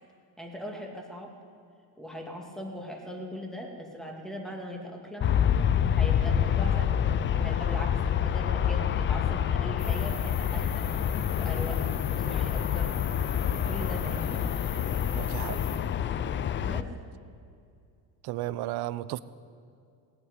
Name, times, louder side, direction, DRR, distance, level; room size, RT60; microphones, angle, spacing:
voice 1, 0.4-1.4 2.0-5.3 5.9-6.9 7.3-10.9 11.3-12.9 13.4-14.4 16.6-16.9, equal, ahead, 0 dB, 2.5 m, -40 dB
Aircraft, 5.2-16.8, left 9 dB, 30° left, 0.4 m, -27 dB
sound 1, 9.8-15.8, left 6 dB, 60° left, 4.2 m, -44 dB
voice 2, 15.1-15.6 18.2-19.2, right 15 dB, 60° right, 16 dB, 0.7 m, -33 dB
18.5 x 8.9 x 8.3 m, 2.4 s
cardioid pair, 120°, 44 cm